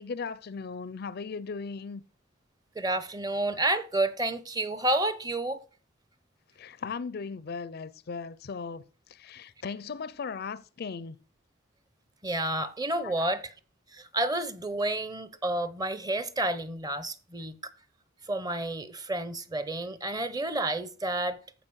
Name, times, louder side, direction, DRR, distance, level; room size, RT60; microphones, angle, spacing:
voice 1, 0.0-2.0 6.6-8.8 9.1-11.2 13.0-13.3, left 5 dB, 45° left, 0.4 m, -37 dB
voice 2, 2.8-5.6 12.2-13.5 13.9-17.6 18.3-21.4, right 1 dB, 20° right, 0.7 m, -30 dB
14.0 x 5.0 x 6.3 m
head